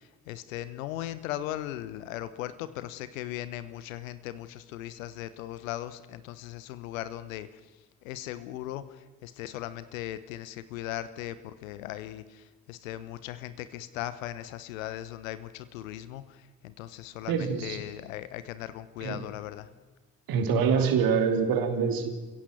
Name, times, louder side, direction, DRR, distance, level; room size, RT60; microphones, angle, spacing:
voice 1, 0.3-7.5 8.0-8.8 9.2-16.2 16.6-19.7, left 13 dB, 70° left, 14 dB, 1.2 m, -38 dB
voice 2, 17.3-17.8 19.0-19.2 20.3-22.1, right 6 dB, 55° right, 6 dB, 2.9 m, -25 dB
28.5 x 16.0 x 7.7 m, 1.2 s
figure-of-eight pair, 45°, 41 cm